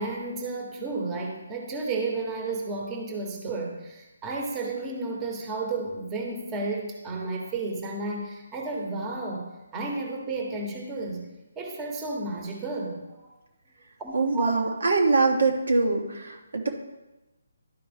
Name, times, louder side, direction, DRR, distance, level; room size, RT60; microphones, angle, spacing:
voice 1, 0.0-9.5 9.7-11.3 11.6-13.3 14.0-14.5, right 3 dB, 20° right, 0 dB, 1.2 m, -32 dB
voice 2, 14.1-16.7, right 3 dB, 75° right, 2 dB, 1.2 m, -23 dB
12.0 x 4.5 x 3.5 m, 1.0 s
figure-of-eight pair, 155°, 0 cm